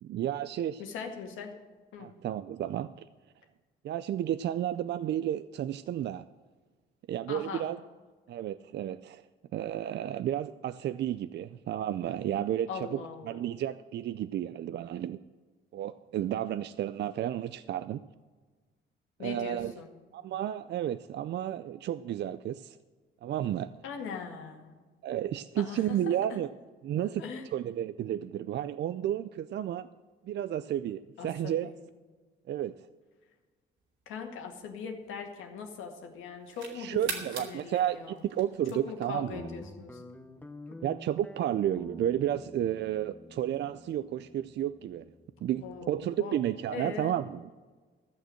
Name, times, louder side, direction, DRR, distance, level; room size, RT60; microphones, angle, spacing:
voice 1, 0.0-0.8 2.0-2.9 3.8-6.2 7.1-7.8 8.3-9.2 9.5-13.0 13.2-15.2 15.7-18.0 19.2-19.7 20.1-22.8 23.2-23.7 25.0-26.5 26.8-27.2 27.5-29.9 30.3-31.7 32.5-32.8 36.7-39.4 40.8-45.0 45.4-47.5, right 11 dB, 60° right, 13 dB, 0.4 m, -32 dB
voice 2, 0.8-1.5 1.9-2.1 7.3-7.7 12.7-13.5 19.2-19.9 23.8-24.8 25.6-26.4 27.2-27.4 31.2-31.8 34.1-38.2 38.7-40.0 45.6-46.3 46.7-47.2, left 6 dB, 90° left, 3 dB, 2.0 m, -41 dB
sound 1, 34.0-35.7 36.2-39.1, right 5 dB, 75° right, 2.8 m, -42 dB
Guitar, 39.3-46.0, left 1 dB, 10° left, 0.9 m, -48 dB
14.0 x 6.7 x 7.7 m, 1.3 s
cardioid pair, 90°, 20 cm